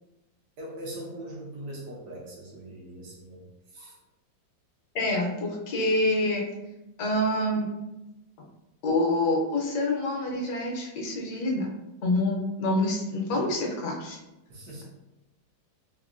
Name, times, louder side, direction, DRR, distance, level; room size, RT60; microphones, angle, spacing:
voice 1, 0.6-3.4 3.7-3.9 14.5-14.8, right 1 dB, 65° right, -3 dB, 1.2 m, -41 dB
voice 2, 4.9-6.4 7.0-7.7 8.8-11.7 12.0-14.2, left 1 dB, 65° left, -2 dB, 1.3 m, -26 dB
3.6 x 2.5 x 2.5 m, 0.97 s
omnidirectional pair, 2.0 m